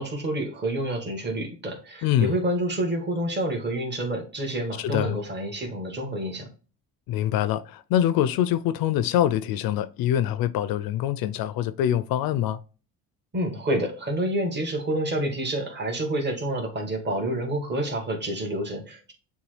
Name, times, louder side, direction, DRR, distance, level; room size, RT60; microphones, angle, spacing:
voice 1, 0.0-6.5 13.3-19.1, right 1 dB, 25° right, 1.6 m, -28 dB
voice 2, 2.0-2.3 4.8-5.2 7.1-12.6, left 11 dB, 65° left, 0.5 m, -24 dB
6.9 x 2.3 x 3.2 m
supercardioid pair, 80°, 38 cm